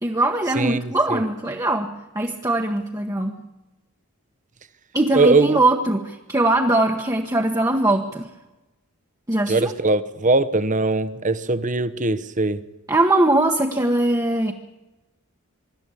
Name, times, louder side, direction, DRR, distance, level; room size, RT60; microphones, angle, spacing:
voice 1, 0.0-3.4 4.9-8.3 9.3-9.7 12.9-14.5, right 2 dB, 15° right, 1.2 m, -21 dB
voice 2, 0.5-1.2 5.1-5.6 9.5-12.6, right 3 dB, 35° right, 1.0 m, -21 dB
25.0 x 12.5 x 8.3 m
head